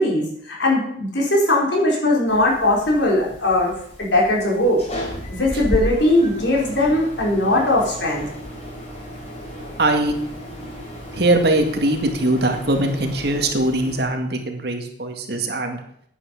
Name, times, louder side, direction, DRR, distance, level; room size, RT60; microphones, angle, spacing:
voice 1, 0.0-3.7 4.0-4.8 5.3-8.2, left 1 dB, 70° left, -2 dB, 4.6 m, -19 dB
sound 1, 2.3-14.0, equal, 35° left, 3.7 m, -34 dB
voice 2, 9.8-10.1 11.1-15.8, right 1 dB, 60° right, 4 dB, 2.1 m, -21 dB
9.9 x 9.8 x 7.2 m, 0.68 s
head